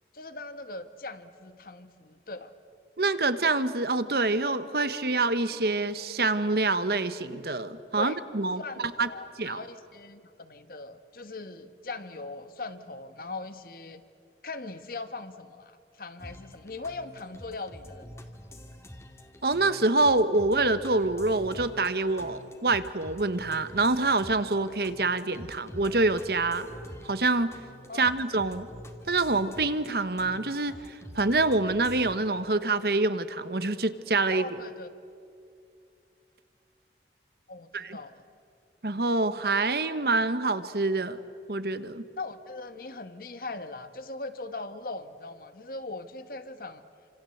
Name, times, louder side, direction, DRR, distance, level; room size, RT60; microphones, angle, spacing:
voice 1, 0.1-2.5 7.9-8.2 8.6-14.0 14.4-18.2 27.9-28.1 34.3-34.9 37.5-38.2 42.2-46.8, left 3 dB, 55° left, 10 dB, 1.4 m, -40 dB
voice 2, 3.0-8.6 9.0-9.1 9.4-9.6 19.4-26.7 27.0-27.6 27.9-28.7 29.1-30.8 31.1-34.5 37.7-38.0 38.8-41.2 41.5-42.0, right 3 dB, 60° right, 12 dB, 1.3 m, -26 dB
sound 1, 16.2-32.1, equal, 15° left, 2.0 m, -47 dB
29.0 x 26.0 x 7.9 m, 2.5 s
head